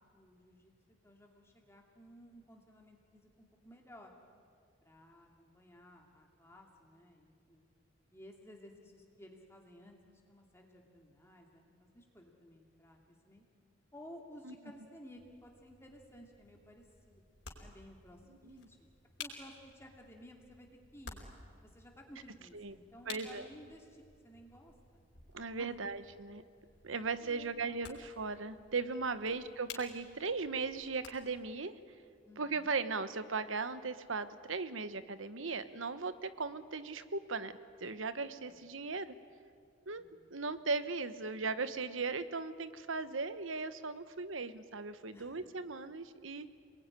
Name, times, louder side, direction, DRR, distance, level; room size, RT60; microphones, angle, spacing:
voice 1, 0.0-4.1 4.8-7.6 8.1-13.0 13.2-13.4 13.9-17.2 17.6-18.9 19.2-21.2 21.6-25.0 25.4-25.7 27.2-28.0 29.1-29.4 32.2-32.7 38.4-38.6 39.9-40.4 45.1-45.4, equal, 15° left, 0 dB, 2.5 m, -56 dB
sound 1, 15.2-31.5, left 5 dB, 55° left, 4.7 m, -54 dB
voice 2, 18.3-18.7 22.5-22.7 23.1-23.5 25.3-26.4 26.8-31.7 32.4-37.5 37.8-39.1 39.9-46.5, right 4 dB, 80° right, 12 dB, 1.2 m, -38 dB
29.0 x 20.5 x 9.9 m, 2.2 s
head